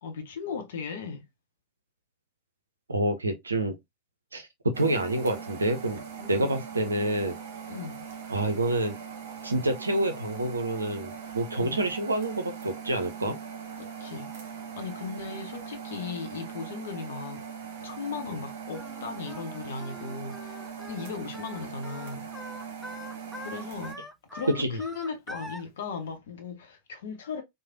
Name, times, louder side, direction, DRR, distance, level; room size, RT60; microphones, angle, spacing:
voice 1, 0.0-1.2 6.2-6.6 7.7-8.1 11.6-11.9 13.8-17.4 17.8-22.3 23.4-24.0 24.3-27.4, left 5 dB, 60° left, 0.6 m, -37 dB
voice 2, 2.9-3.7 4.3-7.4 8.3-9.0 9.4-13.4 24.5-24.8, right 1 dB, 80° right, 0.5 m, -28 dB
sound 1, 4.7-23.9, right 7 dB, 55° right, 0.8 m, -41 dB
Singing, 18.7-25.6, equal, ahead, 0.5 m, -44 dB
3.1 x 2.0 x 2.5 m
figure-of-eight pair, 90°, 0 cm